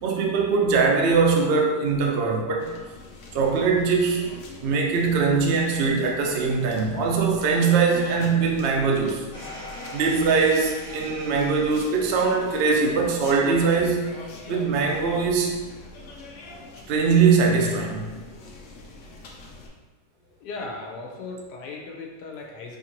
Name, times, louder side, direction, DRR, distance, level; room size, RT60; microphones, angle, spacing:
voice 1, 0.0-2.7 3.3-9.2 9.9-14.1 14.5-15.6 16.9-18.2, right 5 dB, 75° right, 0 dB, 0.5 m, -22 dB
sound 1, 2.6-19.7, left 3 dB, 65° left, 0.8 m, -43 dB
sound 2, 9.3-13.3, equal, 40° left, 0.4 m, -42 dB
voice 2, 20.2-22.8, left 3 dB, 85° left, 0 dB, 1.3 m, -37 dB
4.2 x 2.6 x 2.9 m, 1.3 s
omnidirectional pair, 1.7 m